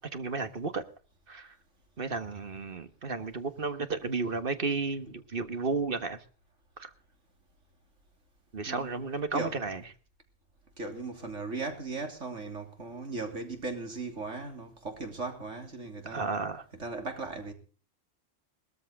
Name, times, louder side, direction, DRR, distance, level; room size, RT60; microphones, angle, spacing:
voice 1, 0.1-0.8 1.3-1.5 2.0-6.2 6.8-6.9 8.5-9.8 16.1-16.6, right 4 dB, 45° right, 1.6 m, -33 dB
voice 2, 8.7-9.0 9.3-9.6 10.8-16.3 16.7-17.5, right 3 dB, 70° right, 3.5 m, -37 dB
20.0 x 14.0 x 3.6 m
omnidirectional pair, 1.3 m